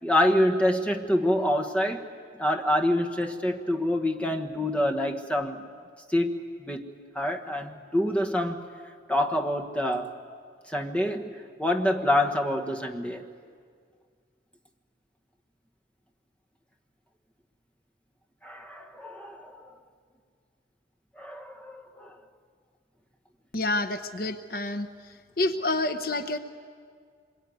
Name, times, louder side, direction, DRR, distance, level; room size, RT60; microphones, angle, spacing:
voice 1, 0.0-2.0 2.4-5.6 6.1-6.9 7.1-8.6 9.1-10.1 10.7-13.2 18.4-19.6 21.2-22.2, left 1 dB, 5° left, 4 dB, 1.3 m, -26 dB
voice 2, 23.5-24.9 25.4-26.4, left 2 dB, 50° left, 9 dB, 1.0 m, -28 dB
26.0 x 22.5 x 9.6 m, 2.1 s
head